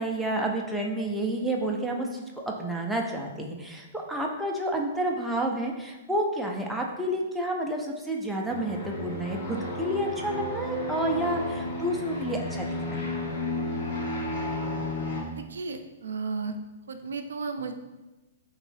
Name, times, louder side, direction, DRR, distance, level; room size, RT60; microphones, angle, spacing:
voice 1, 0.0-13.1, right 1 dB, 5° right, -1 dB, 0.4 m, -30 dB
sound 1, 8.5-15.2, left 1 dB, 55° left, 1.3 m, -32 dB
voice 2, 15.3-16.5 16.9-17.7, right 4 dB, 90° right, 6 dB, 0.4 m, -34 dB
3.5 x 3.0 x 3.3 m, 1.1 s
hypercardioid pair, 150°, 0 cm